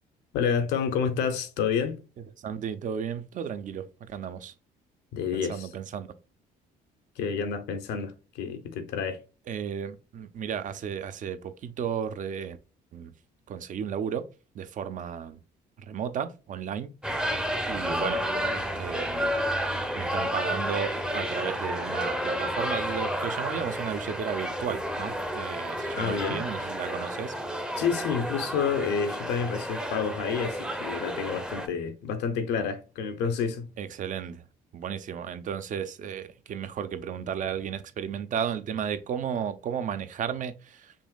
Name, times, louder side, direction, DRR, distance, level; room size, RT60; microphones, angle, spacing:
voice 1, 0.3-2.0 5.1-5.7 7.2-9.2 25.9-26.4 27.8-33.7, left 6 dB, 85° left, 0.9 m, -29 dB
voice 2, 2.4-4.5 5.3-6.1 9.5-12.6 12.9-13.1 13.5-14.2 14.5-15.4 15.8-16.9 17.7-18.2 18.5-19.3 19.9-27.3 33.8-34.4 34.7-40.9, right 8 dB, 50° right, 0.7 m, -34 dB
sound 1, 17.0-31.7, equal, 5° right, 0.7 m, -31 dB
5.4 x 3.0 x 2.3 m
cardioid pair, 110°, 17 cm